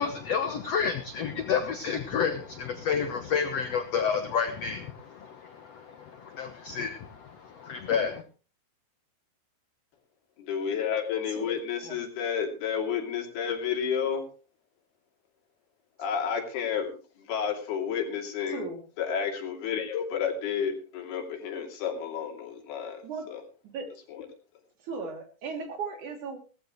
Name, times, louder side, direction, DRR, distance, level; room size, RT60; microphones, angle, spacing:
voice 1, 0.0-8.2, left 6 dB, 60° left, 8 dB, 1.7 m, -30 dB
voice 2, 10.4-14.2 16.0-17.0 17.3-18.6 19.0-23.0 23.3-23.4 24.1-24.3, left 7 dB, 85° left, 3 dB, 4.7 m, -31 dB
voice 3, 18.5-18.8 23.0-23.3 23.6-23.9 24.8-26.4, right 4 dB, 55° right, 5 dB, 4.1 m, -37 dB
18.0 x 14.5 x 3.1 m, 0.34 s
omnidirectional pair, 4.4 m